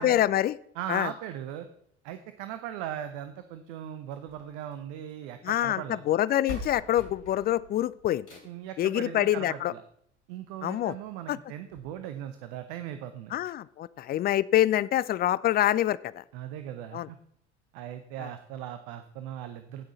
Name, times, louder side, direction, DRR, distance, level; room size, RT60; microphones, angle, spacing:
voice 1, 0.0-0.6 0.9-1.1 5.4-8.4 8.8-9.7 10.6-10.9 11.3-11.4 13.3-16.2 16.9-17.1, left 13 dB, 30° left, 18 dB, 0.4 m, -26 dB
voice 2, 0.7-1.7 2.0-6.0 8.4-9.8 10.3-13.3 16.3-17.2 17.7-19.9, right 11 dB, 55° right, 9 dB, 0.9 m, -39 dB
sound 1, 4.1-5.3 6.1-6.2 6.5-8.7 10.1-10.2 10.7-10.8 11.0-11.1 11.7-11.8, left 2 dB, 85° left, 3.3 m, -43 dB
16.5 x 6.2 x 4.2 m, 0.67 s
figure-of-eight pair, 70°, 34 cm